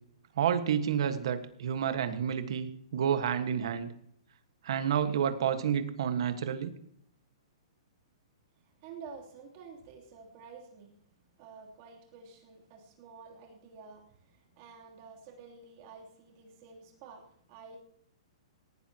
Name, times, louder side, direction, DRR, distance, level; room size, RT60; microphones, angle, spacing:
voice 1, 0.4-3.9 4.6-6.7, right 8 dB, 50° right, 9 dB, 1.5 m, -30 dB
voice 2, 8.8-10.9 11.4-17.8, right 5 dB, 30° right, 0 dB, 3.1 m, -50 dB
18.0 x 15.5 x 2.9 m, 0.69 s
hypercardioid pair, 175°, 3 cm